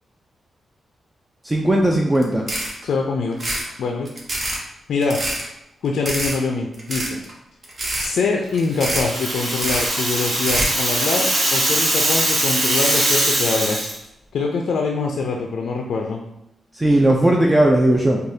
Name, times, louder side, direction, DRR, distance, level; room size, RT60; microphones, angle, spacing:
voice 1, 1.4-2.4 16.7-18.2, right 1 dB, 15° right, 0 dB, 0.3 m, -17 dB
sound 1, 2.1-2.2 2.5-2.8 3.3-3.7 4.0-4.6 5.0-5.4 6.0-6.4 6.7-7.3 7.6-8.1 8.5-9.1 9.5-9.9 10.3-10.8, right 1 dB, 40° right, 0.8 m, -25 dB
voice 2, 2.8-3.4 3.8-4.1 4.9-5.2 5.8-7.2 8.0-13.9 14.3-16.2, left 4 dB, 80° left, 1 dB, 0.3 m, -24 dB
Rattle (instrument), 8.7-13.9, right 1 dB, 55° right, 1.1 m, -21 dB
4.8 x 2.3 x 2.7 m, 0.82 s
wide cardioid pair, 115°, 0 cm